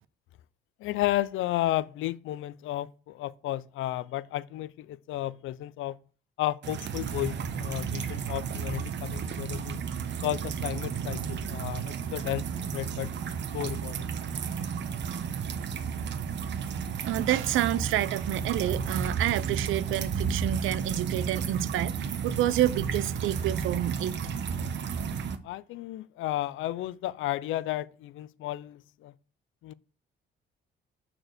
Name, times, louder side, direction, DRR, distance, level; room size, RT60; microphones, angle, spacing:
voice 1, 0.8-6.0 6.4-9.8 10.2-13.1 13.5-14.1 25.4-29.1 29.6-29.7, left 15 dB, 80° left, 0.5 m, -33 dB
sound 1, 6.6-25.4, right 6 dB, 65° right, 1.0 m, -33 dB
voice 2, 17.0-24.1, right 13 dB, 85° right, 0.6 m, -28 dB
6.2 x 4.5 x 6.6 m
cardioid pair, 90°, 20 cm